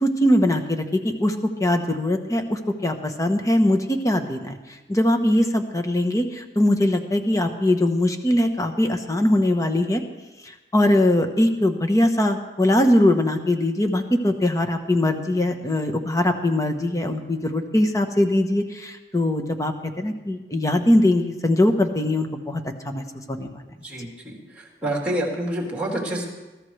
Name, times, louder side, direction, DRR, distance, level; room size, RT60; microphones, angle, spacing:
voice 1, 0.0-4.6 4.9-10.0 10.7-23.6, left 1 dB, 20° left, 5 dB, 1.1 m, -21 dB
voice 2, 23.8-26.3, right 1 dB, 10° right, -3 dB, 3.4 m, -28 dB
22.0 x 14.0 x 3.3 m, 1.1 s
head